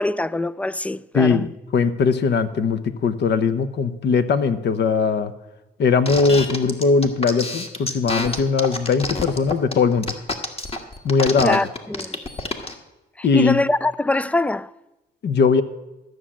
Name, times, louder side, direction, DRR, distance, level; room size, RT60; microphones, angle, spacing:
voice 1, 0.0-1.5 11.4-12.2 13.2-14.7, left 2 dB, 5° left, 0.3 m, -23 dB
voice 2, 1.1-5.3 5.8-10.1 11.0-11.6 13.2-13.6 15.2-15.6, left 5 dB, 60° left, 1.0 m, -20 dB
sound 1, 6.1-12.7, left 2 dB, 30° left, 1.6 m, -28 dB
13.5 x 6.3 x 8.6 m
cardioid pair, 90°, 20 cm